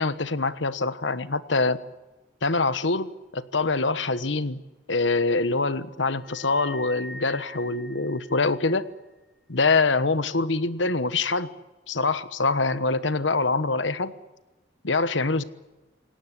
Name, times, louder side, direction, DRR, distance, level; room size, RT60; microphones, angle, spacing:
voice 1, 0.0-1.8 2.4-3.1 3.3-4.6 4.9-8.9 9.5-11.5 11.9-14.1 14.8-15.4, left 3 dB, 85° left, 14 dB, 1.3 m, -24 dB
sound 1, 6.2-8.9, equal, ahead, 3.9 m, -43 dB
28.0 x 18.0 x 9.9 m, 1.1 s
head